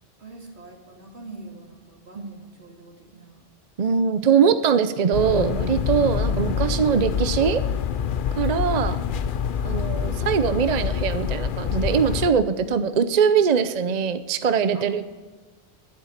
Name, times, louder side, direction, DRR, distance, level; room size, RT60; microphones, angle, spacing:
voice 1, 0.2-3.4 8.8-9.1 10.2-10.3 14.7-14.9, right 2 dB, 85° right, 0 dB, 3.0 m, -44 dB
voice 2, 3.8-7.6 8.3-9.0 9.6-15.0, right 6 dB, 45° right, 11 dB, 0.7 m, -22 dB
sound 1, 5.1-12.3, left 7 dB, 60° left, 0.7 m, -26 dB
sound 2, 6.1-8.5 8.8-11.1, left 6 dB, 80° left, 1.2 m, -37 dB
11.5 x 11.5 x 6.6 m, 1.3 s
omnidirectional pair, 1.1 m